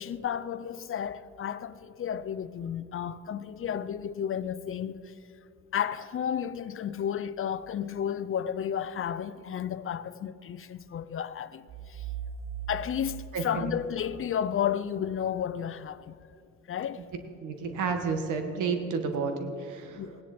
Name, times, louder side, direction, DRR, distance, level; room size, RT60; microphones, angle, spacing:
voice 1, 0.0-5.1 5.7-12.0 12.7-16.2 16.7-17.1 19.1-19.2 19.9-20.2, left 9 dB, 45° left, 0.6 m, -32 dB
sound 1, 11.7-14.5, right 8 dB, 40° right, 0.6 m, -40 dB
voice 2, 13.3-13.7 17.4-20.0, right 5 dB, 80° right, 1.7 m, -31 dB
17.0 x 10.0 x 4.3 m
cardioid pair, 90°, 30 cm